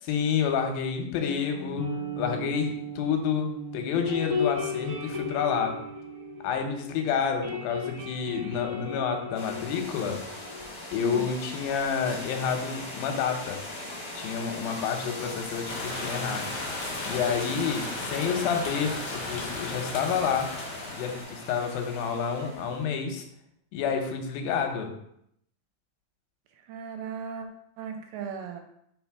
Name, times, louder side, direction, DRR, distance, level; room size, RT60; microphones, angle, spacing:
voice 1, 0.1-5.8 6.4-10.2 10.9-13.6 14.1-16.5 17.1-20.5 20.9-23.3 23.7-24.9, left 6 dB, 85° left, 4 dB, 2.7 m, -29 dB
sound 1, 1.1-6.9 7.2-10.7, left 3 dB, 15° right, 1.6 m, -35 dB
sound 2, 9.3-22.9, left 1 dB, 70° left, 0.8 m, -40 dB
sound 3, 15.7-21.2, left 2 dB, 50° left, 2.2 m, -36 dB
voice 2, 26.7-27.5 27.8-28.6, right 7 dB, 80° right, 5 dB, 2.2 m, -36 dB
5.2 x 3.9 x 4.7 m, 0.73 s
omnidirectional pair, 4.1 m